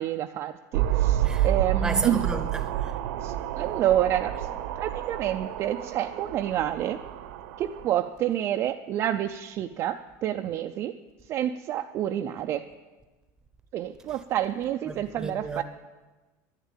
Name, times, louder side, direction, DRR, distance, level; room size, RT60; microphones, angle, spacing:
voice 1, 0.0-2.3 3.2-4.5 4.8-7.0 7.6-11.0 11.3-12.6 13.7-15.6, right 11 dB, 30° right, 0.4 m, -28 dB
sound 1, 0.7-7.9, right 12 dB, 80° right, 0.9 m, -29 dB
voice 2, 1.8-2.9 14.9-15.6, right 3 dB, 10° right, 0.8 m, -32 dB
11.5 x 10.0 x 9.0 m
cardioid pair, 175°, 9 cm